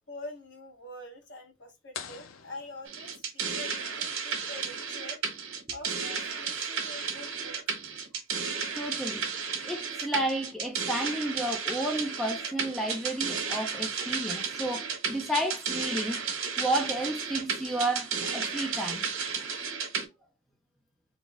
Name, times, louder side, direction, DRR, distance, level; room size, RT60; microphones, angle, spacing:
voice 1, 0.0-8.2, left 1 dB, 60° left, 1.5 m, -46 dB
sound 1, 1.9-3.6, left 7 dB, 80° left, 0.6 m, -45 dB
sound 2, 2.9-20.1, right 6 dB, 85° right, 1.4 m, -33 dB
voice 2, 8.7-9.2 9.6-16.2 16.6-19.0, right 1 dB, ahead, 0.6 m, -32 dB
4.0 x 2.4 x 3.4 m
head